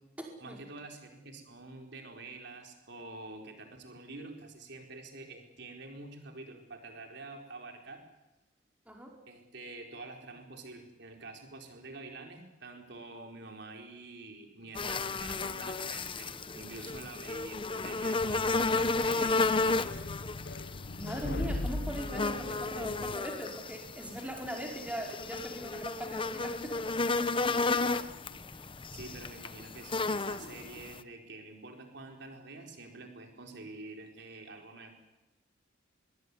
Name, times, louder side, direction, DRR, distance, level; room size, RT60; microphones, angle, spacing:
voice 1, 0.4-8.0 9.3-19.9 24.2-24.3 27.9-35.1, right 3 dB, 60° right, 3 dB, 4.4 m, -47 dB
sound 1, 14.7-31.0, left 3 dB, 25° left, 0.9 m, -33 dB
sound 2, 18.2-23.2, left 2 dB, 55° left, 1.0 m, -39 dB
voice 2, 21.0-26.8, right 1 dB, 5° right, 0 dB, 5.0 m, -40 dB
23.0 x 22.0 x 9.8 m, 0.95 s
head